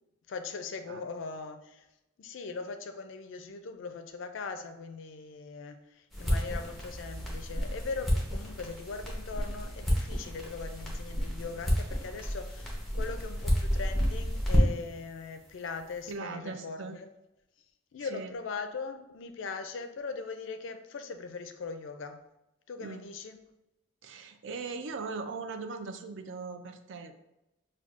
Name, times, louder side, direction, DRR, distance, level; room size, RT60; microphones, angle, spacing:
voice 1, 0.3-1.8 2.2-17.1 17.9-22.2 22.7-23.4, left 4 dB, 70° left, 0.4 m, -40 dB
sound 1, 6.1-15.0, equal, ahead, 0.7 m, -30 dB
voice 2, 16.1-17.0 18.0-18.3 22.8-23.0 24.0-27.2, right 4 dB, 65° right, 0.4 m, -39 dB
5.8 x 2.3 x 2.4 m
head